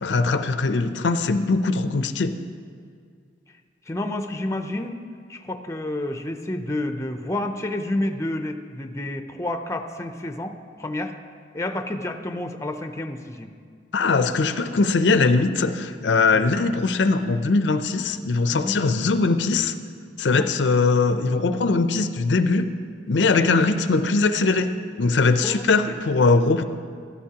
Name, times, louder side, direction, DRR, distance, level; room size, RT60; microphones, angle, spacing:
voice 1, 0.0-2.4 13.9-19.7 20.2-22.7 23.1-26.6, left 3 dB, 85° left, 10 dB, 0.5 m, -21 dB
voice 2, 3.9-5.0 5.3-11.1 11.5-13.5 16.3-16.4 18.5-18.7 20.3-20.5 23.3-23.5 25.4-26.0, left 1 dB, 15° left, 7 dB, 0.5 m, -30 dB
14.5 x 13.0 x 2.9 m, 2.1 s
head